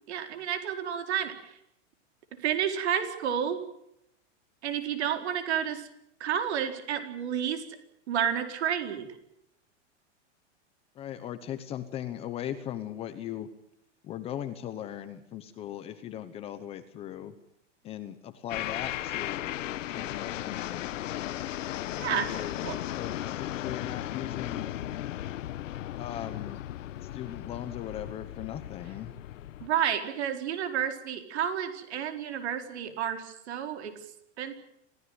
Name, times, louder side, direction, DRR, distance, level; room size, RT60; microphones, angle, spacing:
voice 1, 0.1-1.3 2.4-3.6 4.6-5.9 6.2-7.6 8.1-9.1 22.0-22.3 22.6-22.8 29.6-33.9 34.4-34.5, right 9 dB, 60° right, 7 dB, 4.5 m, -30 dB
voice 2, 10.9-13.5 14.0-17.3 17.8-19.5 19.9-20.9 22.1-24.7 26.0-26.6 27.0-29.1, left 11 dB, 15° left, 10 dB, 0.9 m, -39 dB
sound 1, 18.5-29.7, left 13 dB, 85° left, 1.1 m, -36 dB
27.0 x 16.0 x 9.5 m, 0.79 s
supercardioid pair, 175°, 37 cm